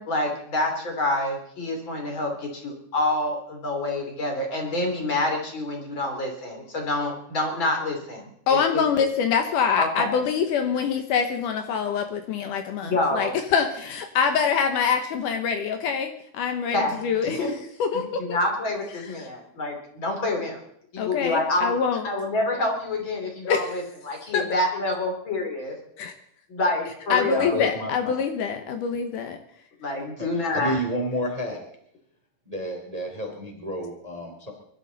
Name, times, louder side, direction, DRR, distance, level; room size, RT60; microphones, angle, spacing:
voice 1, 0.0-8.8 9.8-10.2 12.8-13.4 16.7-17.5 17.9-20.6 20.9-21.7 22.0-25.8 26.5-27.7 29.8-30.8, left 2 dB, 35° left, 2 dB, 3.6 m, -27 dB
voice 2, 8.5-16.8 17.0-17.4 17.8-18.2 21.0-22.0 23.5-23.7 24.3-24.4 26.0-26.1 27.1-29.4, left 6 dB, 75° left, 6 dB, 2.5 m, -25 dB
voice 3, 27.2-27.9 30.2-31.6 32.5-34.5, equal, 10° right, 2 dB, 2.5 m, -30 dB
23.5 x 12.0 x 4.0 m, 0.69 s
omnidirectional pair, 3.9 m